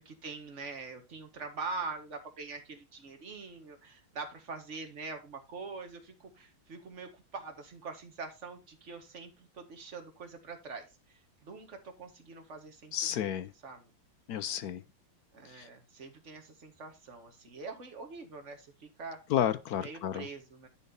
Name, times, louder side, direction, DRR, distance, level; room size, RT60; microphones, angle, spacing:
voice 1, 0.0-13.4 13.6-13.9 15.3-19.2 19.8-20.7, right 4 dB, 40° right, 1.8 m, -44 dB
voice 2, 12.9-13.5 14.3-14.8 15.5-15.7 19.3-20.3, left 10 dB, 70° left, 0.9 m, -31 dB
11.0 x 4.2 x 5.3 m
omnidirectional pair, 2.2 m